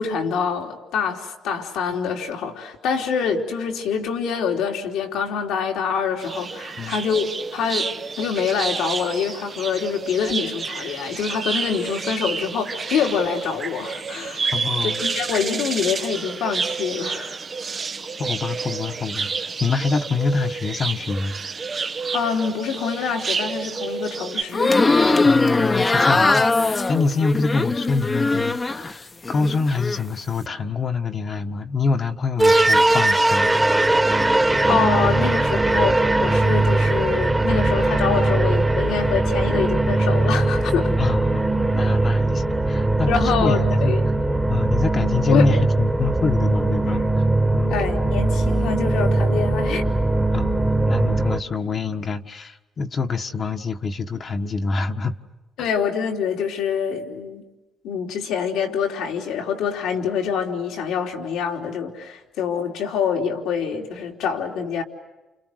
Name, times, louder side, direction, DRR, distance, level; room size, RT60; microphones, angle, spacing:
voice 1, 0.0-7.9 8.2-14.5 14.8-17.4 22.1-24.8 34.7-40.9 43.0-44.1 45.3-45.5 47.7-49.9 55.6-57.4 57.8-64.8, left 6 dB, 90° left, 2 dB, 3.5 m, -25 dB
sound 1, 6.2-24.4, right 5 dB, 40° right, 1.0 m, -29 dB
voice 2, 14.5-15.0 18.2-21.4 25.2-33.5 41.0-41.5 41.7-44.0 44.5-47.0 47.5-47.7 50.3-55.2, left 4 dB, 45° left, 4 dB, 1.6 m, -25 dB
sound 2, 24.5-28.9 29.3-30.0, left 3 dB, 25° left, 1.2 m, -20 dB
sound 3, 32.4-51.4, right 2 dB, 15° right, 1.7 m, -20 dB
29.5 x 29.0 x 6.6 m, 1.1 s
cardioid pair, 90°, 0 cm